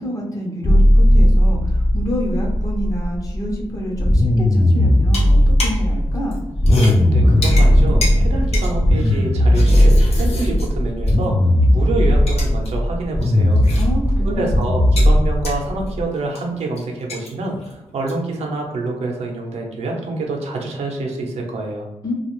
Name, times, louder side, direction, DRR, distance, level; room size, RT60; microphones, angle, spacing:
voice 1, 0.0-6.4 13.7-14.5 22.0-22.1, equal, 30° left, -2 dB, 0.8 m, -27 dB
sound 1, 0.6-3.7 3.9-16.0, left 1 dB, 15° left, 0.3 m, -16 dB
sound 2, 5.0-5.9 6.2-11.3 11.6-11.7 12.1-12.7 13.0-14.2 14.5-18.3, left 2 dB, 70° left, 0.8 m, -32 dB
voice 2, 7.1-11.4 11.7-13.6 14.3-21.9, right 2 dB, 75° right, 0 dB, 0.7 m, -26 dB
2.5 x 2.3 x 3.1 m, 0.94 s
cardioid pair, 105°, 11 cm